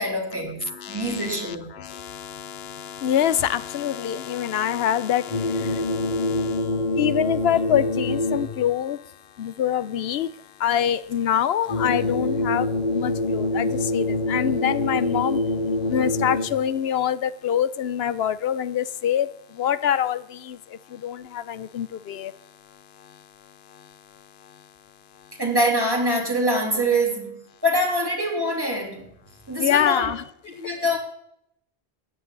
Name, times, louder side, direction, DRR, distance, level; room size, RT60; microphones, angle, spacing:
voice 1, 0.0-0.6 0.9-1.7 25.4-29.1 29.5-30.1 30.6-31.0, equal, 20° right, 3.3 m, -24 dB
voice 2, 0.6-9.0 9.4-10.3 10.6-15.4 15.9-22.3 29.6-30.2, left 10 dB, 75° left, 0.9 m, -25 dB
sound 1, 5.3-8.7 11.7-16.7, left 2 dB, 45° left, 2.1 m, -25 dB
14.0 x 9.9 x 3.9 m
omnidirectional pair, 1.1 m